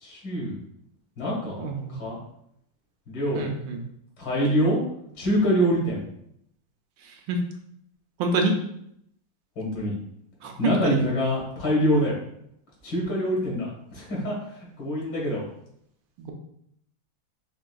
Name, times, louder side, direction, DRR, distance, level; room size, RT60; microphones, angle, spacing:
voice 1, 0.0-0.6 1.2-2.2 3.1-3.5 4.2-4.8 5.2-6.0 9.6-9.9 10.6-12.2 12.8-15.4, equal, 70° left, -3 dB, 2.2 m, -25 dB
voice 2, 1.6-1.9 3.3-3.8 7.3-7.4 8.2-8.5 10.4-11.0 16.2-16.3, right 3 dB, 75° right, 3 dB, 1.3 m, -26 dB
5.0 x 3.6 x 2.3 m, 0.73 s
omnidirectional pair, 2.1 m